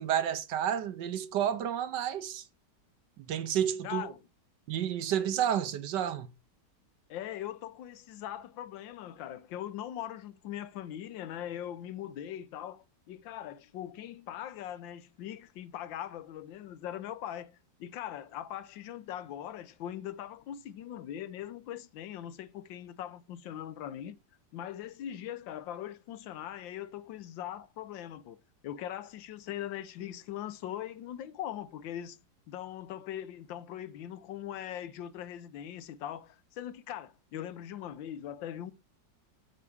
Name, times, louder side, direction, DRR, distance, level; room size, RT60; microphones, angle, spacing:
voice 1, 0.0-2.4 3.2-4.1 4.7-6.3, right 10 dB, 70° right, 1.4 m, -30 dB
voice 2, 3.8-4.2 7.1-24.2 24.5-32.2 32.5-38.7, left 11 dB, 80° left, 1.5 m, -41 dB
8.4 x 4.8 x 7.0 m
omnidirectional pair, 2.0 m